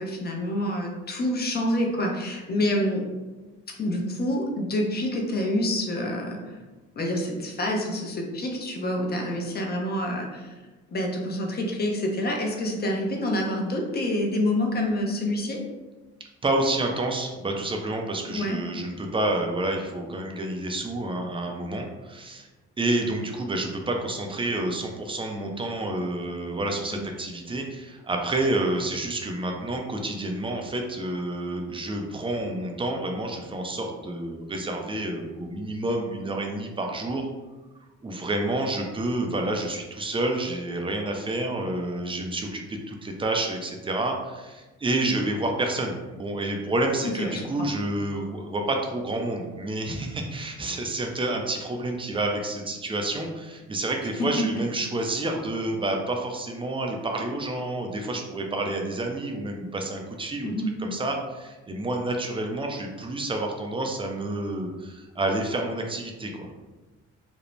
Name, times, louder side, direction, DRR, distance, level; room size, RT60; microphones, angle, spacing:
voice 1, 0.0-3.0 3.8-6.6 7.0-10.6 10.9-15.6 18.3-18.6 26.9-27.1 45.0-45.2 47.0-47.7 54.2-54.5 60.4-60.7, left 1 dB, 35° left, 1 dB, 0.6 m, -27 dB
voice 2, 16.4-22.5 22.8-37.3 38.0-60.5 60.8-66.5, right 2 dB, 20° right, 2 dB, 0.4 m, -29 dB
2.5 x 2.0 x 3.0 m, 1.2 s
cardioid pair, 90°, 30 cm